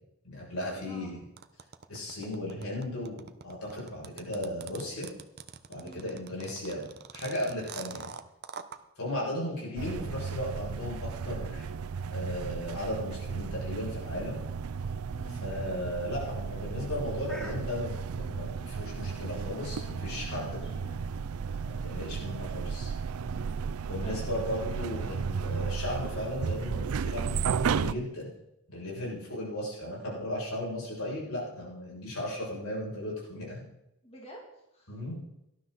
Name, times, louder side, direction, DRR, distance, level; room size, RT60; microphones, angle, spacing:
voice 1, 0.2-1.2 1.9-5.1 5.7-6.9 7.1-8.1 9.0-11.6 12.1-14.4 15.4-20.5 21.6-22.9 23.9-28.3 28.7-33.6 34.9-35.2, left 1 dB, 80° left, -3 dB, 7.1 m, -36 dB
voice 2, 0.8-1.2 5.8-6.2 9.6-9.8 15.1-15.4 19.7-21.1 24.0-24.3 34.0-35.0, left 1 dB, 25° left, -2 dB, 2.7 m, -50 dB
sound 1, 1.4-8.8, right 6 dB, 45° right, 0.8 m, -44 dB
sound 2, 9.8-27.9, right 6 dB, 80° right, 0.5 m, -34 dB
sound 3, 14.1-18.0, equal, 5° left, 2.2 m, -53 dB
18.0 x 12.0 x 4.1 m, 0.86 s
head